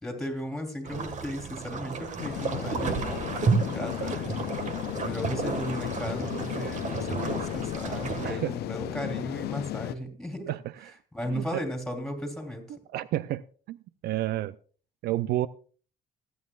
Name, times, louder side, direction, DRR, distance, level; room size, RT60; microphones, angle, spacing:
voice 1, 0.0-3.4 3.7-4.3 5.0-10.5 11.1-12.6, equal, 5° left, 3.5 m, -36 dB
sound 1, 0.8-8.3, right 4 dB, 45° right, 1.7 m, -32 dB
sound 2, 2.2-10.0, left 15 dB, 70° left, 0.5 m, -35 dB
voice 2, 12.9-13.4 13.7-13.8 14.0-14.5 15.0-15.5, right 14 dB, 70° right, 0.5 m, -29 dB
26.5 x 9.3 x 2.4 m
cardioid pair, 110°, 17 cm